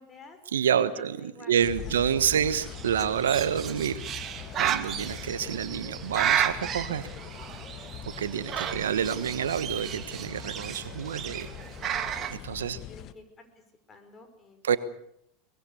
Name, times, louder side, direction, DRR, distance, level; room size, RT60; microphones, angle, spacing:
voice 1, 0.0-0.4 0.8-2.0 12.7-14.8, left 3 dB, 25° left, 7 dB, 5.6 m, -52 dB
voice 2, 0.5-4.0 4.6-7.0 8.2-11.5 12.3-12.8 14.6-14.8, right 8 dB, 80° right, 14 dB, 1.2 m, -28 dB
sound 1, 1.6-13.1, left 11 dB, 45° left, 1.5 m, -43 dB
Bird, 2.5-12.3, right 9 dB, 35° right, 2.2 m, -33 dB
23.5 x 21.0 x 6.9 m, 0.74 s
hypercardioid pair, 85°, 0 cm